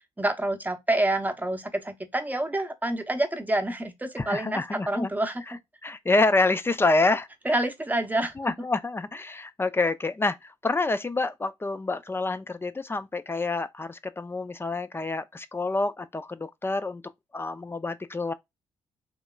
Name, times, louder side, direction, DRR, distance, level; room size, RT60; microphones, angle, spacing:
voice 1, 0.0-5.4 7.4-8.5, right 1 dB, 15° right, 0.8 m, -28 dB
voice 2, 4.2-5.1 5.8-7.3 8.4-17.0 17.3-18.3, left 3 dB, 20° left, 0.5 m, -27 dB
3.2 x 2.8 x 2.3 m
hypercardioid pair, 50°, 12 cm